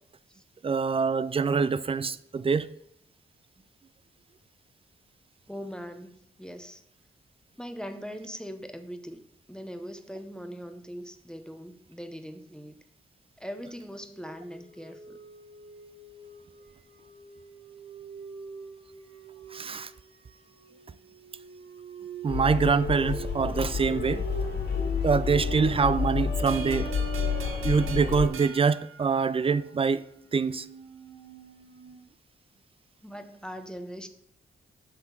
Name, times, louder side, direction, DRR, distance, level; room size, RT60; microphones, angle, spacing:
voice 1, 0.6-2.7 19.5-19.9 22.2-24.3 25.0-26.9 27.6-30.1 30.3-30.7, right 5 dB, 25° right, 0.3 m, -25 dB
voice 2, 5.5-6.8 7.6-9.2 9.5-12.8 13.4-15.2 33.0-34.1, equal, 5° left, 0.7 m, -41 dB
sound 1, 14.1-32.0, right 5 dB, 60° right, 1.0 m, -47 dB
sound 2, 22.3-28.3, left 6 dB, 55° left, 1.8 m, -30 dB
sound 3, 26.5-29.7, right 7 dB, 80° right, 0.6 m, -44 dB
7.8 x 3.6 x 4.4 m
cardioid pair, 50°, 21 cm